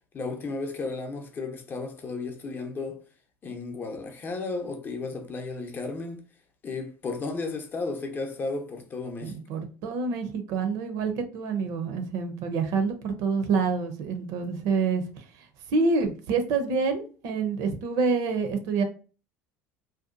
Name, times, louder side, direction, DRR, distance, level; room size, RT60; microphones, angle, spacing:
voice 1, 0.1-3.0 3.4-6.2 6.6-9.4, left 3 dB, 30° left, 0.6 m, -34 dB
voice 2, 9.2-15.2 15.7-18.8, right 4 dB, 65° right, 0.5 m, -27 dB
2.7 x 2.2 x 2.5 m
supercardioid pair, 100°, 6 cm